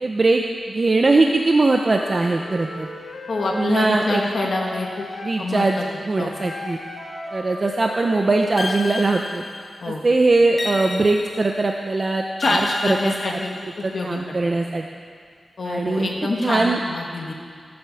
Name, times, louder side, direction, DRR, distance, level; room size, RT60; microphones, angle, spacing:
voice 1, 0.0-2.9 3.5-4.2 5.2-6.8 7.3-9.4 9.9-13.4 13.8-14.8 15.6-16.8, right 3 dB, 35° right, 2 dB, 0.6 m, -21 dB
Wind instrument woodwind instrument, 1.8-5.4 6.3-8.9, left 1 dB, 75° left, 3.5 m, -36 dB
voice 2, 3.3-5.1 5.4-5.8 6.2-6.3 9.8-10.0 12.4-13.5 13.9-14.4 15.6-17.3, left 2 dB, 55° left, 0 dB, 1.8 m, -25 dB
sound 1, 8.6-9.9 10.6-11.7 12.4-13.9, left 3 dB, 35° left, 0.4 m, -31 dB
16.0 x 7.8 x 7.1 m, 2.1 s
wide cardioid pair, 145°, 0 cm